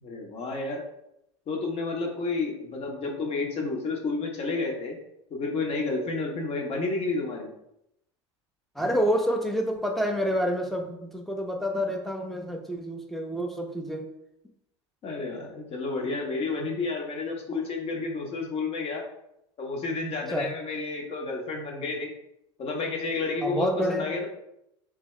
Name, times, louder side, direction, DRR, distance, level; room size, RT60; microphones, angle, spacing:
voice 1, 0.0-0.8 1.5-5.0 5.3-7.5 15.0-19.0 19.6-22.1 22.6-24.3, left 3 dB, 40° left, 1 dB, 1.0 m, -30 dB
voice 2, 8.8-14.1 20.3-20.5 23.4-24.1, equal, ahead, 3 dB, 0.6 m, -28 dB
3.5 x 2.7 x 3.2 m, 0.82 s
hypercardioid pair, 95°, 15 cm